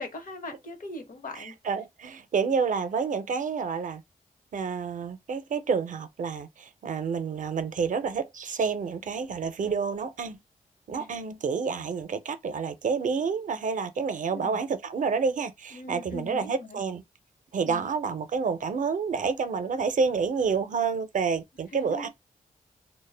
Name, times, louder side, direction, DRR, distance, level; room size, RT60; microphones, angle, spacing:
voice 1, 0.0-1.6 11.0-11.1 14.3-14.6 15.7-16.8 17.6-17.8 21.7-22.1, left 2 dB, 70° left, 0.8 m, -40 dB
voice 2, 1.4-4.0 4.5-10.4 10.9-17.0 17.5-22.1, right 5 dB, 60° right, 0.5 m, -29 dB
2.1 x 2.0 x 3.2 m
cardioid pair, 60°, 15 cm